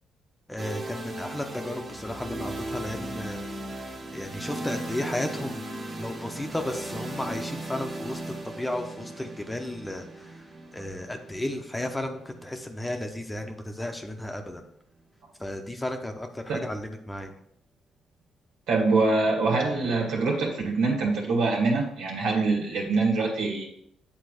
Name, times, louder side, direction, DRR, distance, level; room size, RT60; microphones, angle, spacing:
voice 1, 0.5-3.5 4.1-5.6 6.0-10.4 10.7-14.7 15.4-17.3, left 1 dB, 10° left, 4 dB, 0.9 m, -34 dB
sound 1, 0.6-14.4, right 1 dB, 35° right, 1.6 m, -38 dB
voice 2, 18.7-23.7, right 3 dB, 85° right, -1 dB, 2.2 m, -24 dB
8.5 x 3.7 x 5.0 m, 0.72 s
cardioid pair, 90°, 0 cm